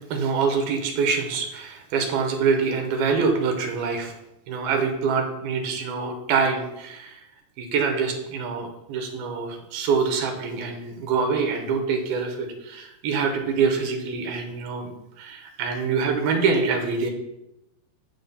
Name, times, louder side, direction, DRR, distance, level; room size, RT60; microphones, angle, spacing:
voice 1, 0.1-4.1 4.5-7.2 7.6-14.9 15.2-17.1, right 5 dB, 80° right, 3 dB, 2.8 m, -25 dB
12.5 x 5.5 x 2.2 m, 0.87 s
omnidirectional pair, 4.3 m